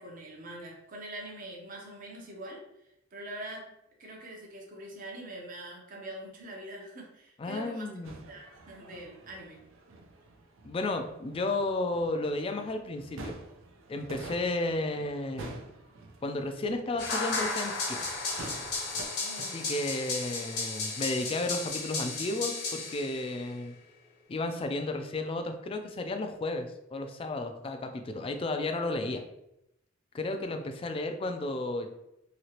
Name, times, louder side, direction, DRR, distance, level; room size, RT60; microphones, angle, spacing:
voice 1, 0.0-2.6 3.1-3.7 4.0-7.9 8.3-9.6 19.2-19.6, right 1 dB, 45° right, -1 dB, 0.7 m, -43 dB
voice 2, 7.4-8.2 10.6-13.4 13.9-15.6 16.2-18.0 19.5-23.7 24.3-29.2 30.1-31.9, left 2 dB, 30° left, 6 dB, 0.3 m, -33 dB
sound 1, 8.0-19.1, right 2 dB, 80° right, 0.5 m, -48 dB
sound 2, 17.0-23.4, left 3 dB, 55° left, 0.8 m, -34 dB
3.0 x 2.8 x 2.8 m, 0.84 s
head